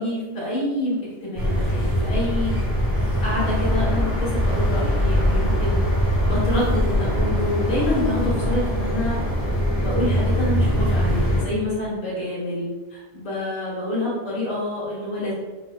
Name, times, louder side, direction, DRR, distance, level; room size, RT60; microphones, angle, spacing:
voice 1, 0.0-2.6 3.2-5.8 6.2-9.2 9.8-15.3, left 1 dB, 85° left, -7 dB, 1.8 m, -27 dB
sound 1, 1.4-11.4, equal, 10° left, 0.8 m, -22 dB
4.4 x 2.1 x 2.3 m, 1.3 s
omnidirectional pair, 1.4 m